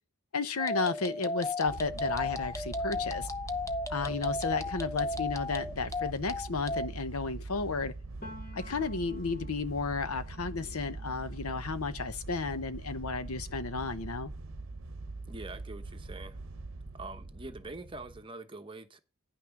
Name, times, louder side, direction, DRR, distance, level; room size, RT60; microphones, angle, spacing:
voice 1, 0.3-3.3 3.9-7.9 8.5-14.3, left 4 dB, 80° left, 0.9 m, -33 dB
sound 1, 0.6-6.9, left 2 dB, 15° left, 0.6 m, -35 dB
sound 2, 1.7-18.2, right 2 dB, 60° right, 0.8 m, -43 dB
Piano, 8.2-15.8 16.2-17.7, left 1 dB, 40° left, 2.1 m, -55 dB
voice 2, 15.3-16.4 16.9-19.0, right 2 dB, 20° right, 0.9 m, -44 dB
9.7 x 6.1 x 5.9 m
head